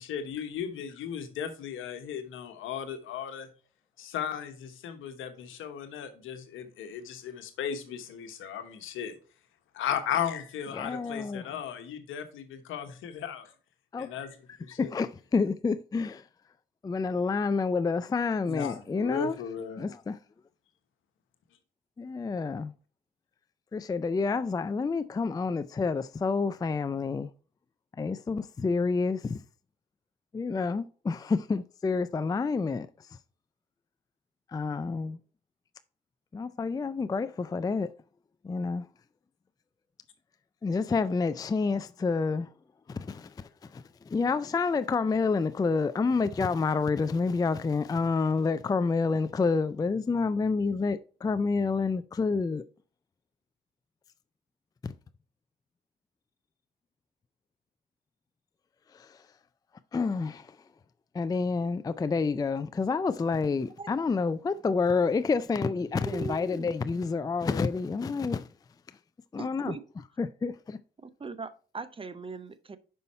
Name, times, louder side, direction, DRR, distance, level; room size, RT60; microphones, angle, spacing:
voice 1, 0.0-3.5 4.0-9.2 9.7-13.5 14.0-14.4 14.6-14.9 18.5-19.8, left 8 dB, 80° left, 1.1 m, -36 dB
voice 2, 10.7-11.5 13.9-14.1 14.8-16.2 16.8-19.4 19.8-20.2 22.0-22.7 23.7-27.3 28.0-29.4 30.3-32.9 34.5-35.2 36.3-37.9 38.4-38.9 40.6-42.5 42.9-52.6 54.8-54.9 58.9-59.2 59.9-60.6 61.1-68.5 69.3-69.7 70.2-70.8, left 4 dB, 20° left, 0.4 m, -28 dB
voice 3, 66.0-66.7 69.4-69.8 71.0-72.8, right 4 dB, 25° right, 0.6 m, -39 dB
5.6 x 5.3 x 4.2 m
supercardioid pair, 70°, 20 cm